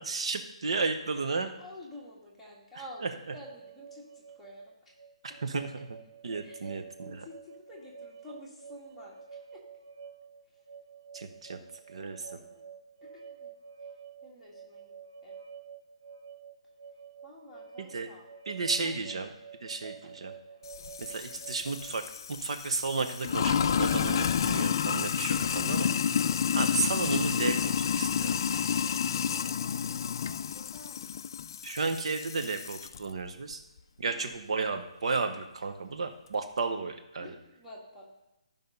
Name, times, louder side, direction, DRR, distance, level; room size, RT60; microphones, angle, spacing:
voice 1, 0.0-1.6 5.4-5.9 6.2-7.2 11.1-11.6 11.9-12.3 17.8-18.1 18.5-19.3 19.6-19.9 20.2-20.3 21.0-22.0 22.3-25.9 26.5-28.4 31.6-33.6 34.0-37.3, right 4 dB, 60° right, 6 dB, 1.0 m, -33 dB
voice 2, 1.6-5.0 5.3-5.4 6.4-9.6 11.5-11.6 11.9-12.7 13.0-13.5 14.2-14.9 15.2-15.4 17.2-18.3 18.8-19.3 19.8-20.9 28.5-28.9 29.2-31.3 34.0-34.3 37.2-38.1, left 1 dB, 5° left, -7 dB, 1.8 m, -51 dB
sound 1, 3.3-22.1, right 6 dB, 40° right, 1.1 m, -49 dB
Sink (filling or washing), 20.7-33.0, left 7 dB, 40° left, 0.3 m, -30 dB
13.0 x 5.5 x 5.5 m, 0.96 s
hypercardioid pair, 170°, 4 cm